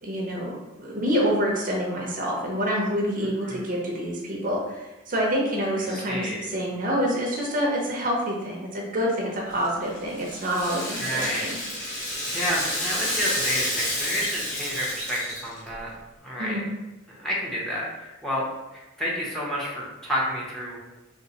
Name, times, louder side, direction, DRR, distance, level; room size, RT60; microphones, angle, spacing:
voice 1, 0.0-11.6 16.4-16.6, equal, 40° right, -2 dB, 0.6 m, -27 dB
voice 2, 5.9-6.4 11.0-11.5 12.3-15.9 16.2-16.6 17.1-20.8, equal, ahead, -5 dB, 0.7 m, -30 dB
Rattle (instrument), 9.5-15.7, left 1 dB, 40° left, 1.0 m, -30 dB
3.0 x 2.9 x 2.8 m, 1.1 s
head